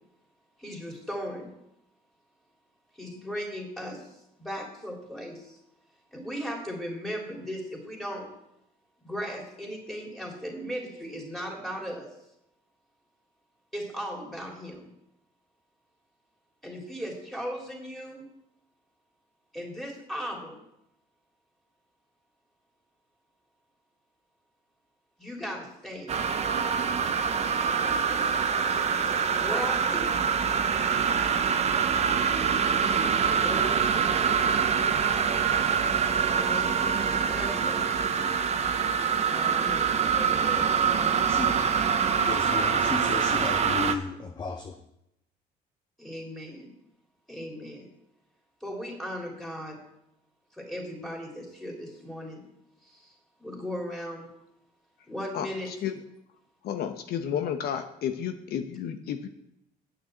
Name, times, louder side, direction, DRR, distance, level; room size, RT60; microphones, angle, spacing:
voice 1, 0.6-1.5 3.0-4.1 4.4-5.6 6.1-8.3 9.0-12.1 13.7-14.9 16.6-18.3 19.5-20.6 25.2-26.1 29.4-30.1 33.4-34.4 36.3-38.1 39.2-42.1 46.0-46.7 47.3-47.9 48.6-49.8 50.5-52.4 52.9-53.1 53.4-54.3 55.1-55.7, equal, ahead, 3.5 m, -37 dB
sound 1, 26.1-44.0, right 6 dB, 40° right, 0.9 m, -25 dB
voice 2, 41.3-41.6 42.2-44.8, left 4 dB, 25° left, 0.8 m, -34 dB
voice 3, 55.3-55.9 56.6-59.3, left 9 dB, 70° left, 0.9 m, -32 dB
9.0 x 6.7 x 7.8 m
cardioid pair, 110°, 17 cm